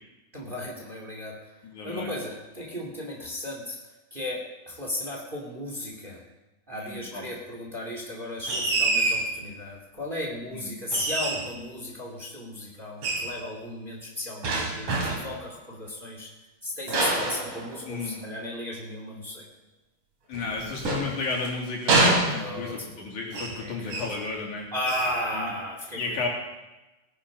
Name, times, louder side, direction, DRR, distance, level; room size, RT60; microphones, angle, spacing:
voice 1, 0.3-1.5 1.8-3.8 4.1-6.2 6.7-16.3 16.6-19.5 22.4-22.9 23.6-24.1 24.7-26.3, left 1 dB, 15° right, 0 dB, 2.4 m, -35 dB
voice 2, 1.6-2.1 6.7-7.3 10.5-10.7 17.9-18.2 20.3-22.0 22.3-24.7 25.3-25.5 26.0-26.3, left 4 dB, 75° left, -2 dB, 4.4 m, -33 dB
sound 1, 8.5-9.3 10.9-11.6 13.0-13.3 14.4-15.4 16.9-18.1 20.3-21.5 21.9-22.8 23.3-23.6 23.9-24.2 24.8-25.2, right 2 dB, 80° right, 4.6 m, -26 dB
18.0 x 10.0 x 5.5 m, 1.0 s
omnidirectional pair, 3.5 m